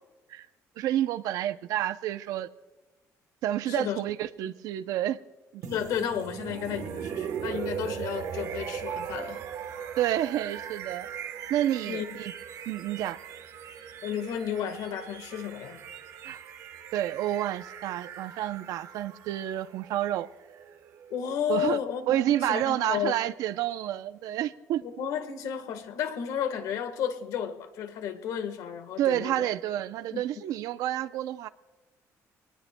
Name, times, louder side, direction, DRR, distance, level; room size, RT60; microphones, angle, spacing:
voice 1, 0.8-2.5 3.4-5.2 5.5-5.6 10.0-11.1 11.5-12.3 12.7-13.2 16.2-16.4 16.9-20.3 21.5-21.8 22.1-24.8 29.0-31.5, right 12 dB, 85° right, 0.6 m, -29 dB
voice 2, 3.7-4.0 4.4-4.5 5.6-9.4 11.9-12.2 14.0-15.8 21.1-23.2 24.8-29.5 30.1-30.4, left 8 dB, 85° left, 1.5 m, -32 dB
sound 1, 5.6-21.5, right 8 dB, 65° right, 1.2 m, -39 dB
25.5 x 20.0 x 2.3 m
cardioid pair, 180°, 6 cm